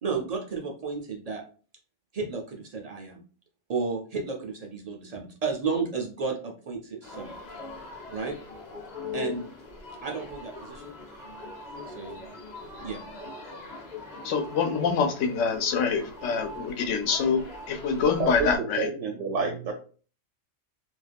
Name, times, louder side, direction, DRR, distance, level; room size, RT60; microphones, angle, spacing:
voice 1, 0.0-1.4 2.1-3.2 3.7-7.3 8.1-8.3 9.1-9.4 10.0-10.9 11.9-12.2 12.8-13.0, right 4 dB, 55° right, 1 dB, 0.4 m, -32 dB
sound 1, 7.0-18.6, left 3 dB, 40° left, 0.7 m, -41 dB
voice 2, 14.2-18.9, left 5 dB, 80° left, 5 dB, 1.0 m, -26 dB
voice 3, 17.9-18.5 18.8-19.7, right 4 dB, 85° right, 0 dB, 1.0 m, -29 dB
2.5 x 2.3 x 3.3 m, 0.38 s
omnidirectional pair, 1.3 m